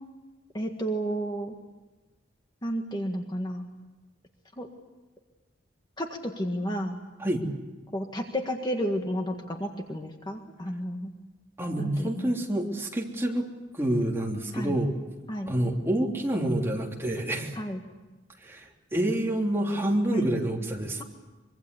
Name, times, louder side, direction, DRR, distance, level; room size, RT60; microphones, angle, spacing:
voice 1, 0.5-1.5 2.6-3.7 4.6-4.7 6.0-7.0 7.9-11.1 11.8-12.3 14.5-14.8 15.3-15.5 17.5-17.8 20.1-20.3, equal, 25° left, 3 dB, 1.8 m, -32 dB
voice 2, 11.6-14.9 15.5-17.6 18.4-21.0, right 1 dB, 15° right, -1 dB, 3.3 m, -28 dB
24.5 x 24.0 x 8.4 m, 1.2 s
head